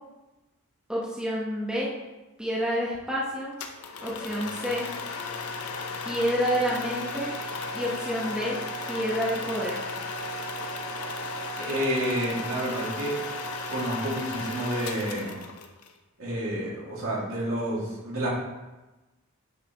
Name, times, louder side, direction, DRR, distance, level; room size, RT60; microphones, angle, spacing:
voice 1, 0.9-1.9 2.4-3.5 4.0-4.9 6.0-7.3 7.7-8.6 8.9-9.9, equal, 5° right, -6 dB, 1.1 m, -28 dB
sound 1, 3.6-15.9, left 3 dB, 85° left, 0.8 m, -35 dB
voice 2, 11.6-13.2 13.7-15.4 16.2-18.3, right 1 dB, 70° right, -6 dB, 2.5 m, -29 dB
9.1 x 5.8 x 3.1 m, 1.1 s
head